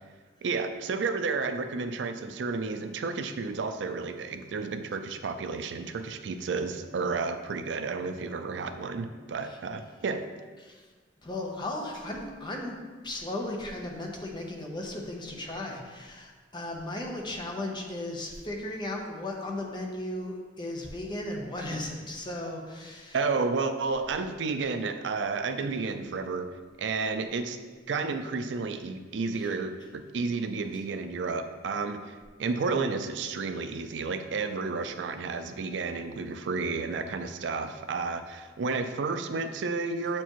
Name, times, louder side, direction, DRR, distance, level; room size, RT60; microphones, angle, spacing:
voice 1, 0.4-10.3 23.1-26.5 26.8-27.6 27.9-40.2, right 4 dB, 70° right, 8 dB, 0.4 m, -31 dB
voice 2, 11.2-12.8 13.0-23.2 29.4-29.5, left 1 dB, 25° left, 0 dB, 0.8 m, -36 dB
7.9 x 4.4 x 3.0 m, 1.4 s
head